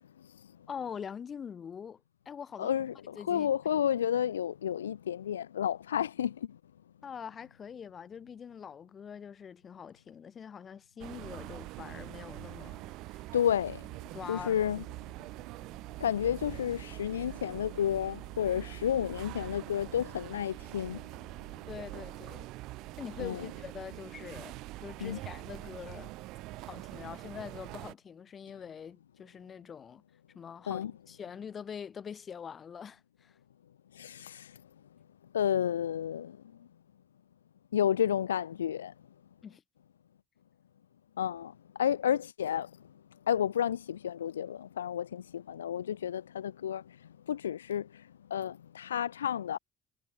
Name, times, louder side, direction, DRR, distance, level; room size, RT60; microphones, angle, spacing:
voice 1, 0.7-2.0 2.3-2.7 3.1-3.5 7.0-13.2 14.1-14.5 21.7-22.5 23.0-26.1 26.7-30.0 30.3-33.4 39.4-39.6, left 7 dB, 40° left, 5.3 m, -44 dB
voice 2, 2.6-6.5 13.3-13.8 14.3-14.8 16.0-21.0 23.2-23.5 25.0-25.2 30.7-30.9 33.9-34.6 35.3-36.4 37.7-38.9 41.2-42.7 43.3-47.0 47.3-49.6, left 9 dB, 80° left, 0.8 m, -31 dB
sound 1, 11.0-27.9, right 19 dB, 60° right, 2.3 m, -44 dB
figure-of-eight pair, 55°, 0 cm